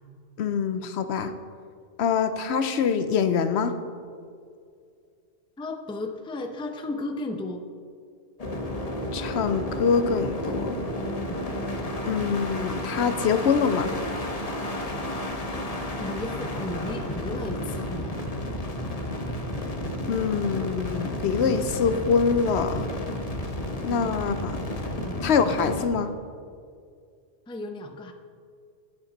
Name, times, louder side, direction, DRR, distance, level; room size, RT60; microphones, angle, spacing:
voice 1, 0.4-1.3 2.0-3.7 9.1-10.8 12.0-13.9 20.1-22.9 23.8-24.6 25.2-26.1, left 6 dB, 70° left, 10 dB, 0.8 m, -24 dB
voice 2, 5.6-7.6 11.3-11.4 16.0-18.1 23.7-24.1 25.0-25.2 27.5-28.1, left 2 dB, 5° left, 5 dB, 0.4 m, -34 dB
sound 1, 8.4-25.9, left 1 dB, 35° left, 1.0 m, -32 dB
10.5 x 9.3 x 3.9 m, 2.2 s
omnidirectional pair, 1.2 m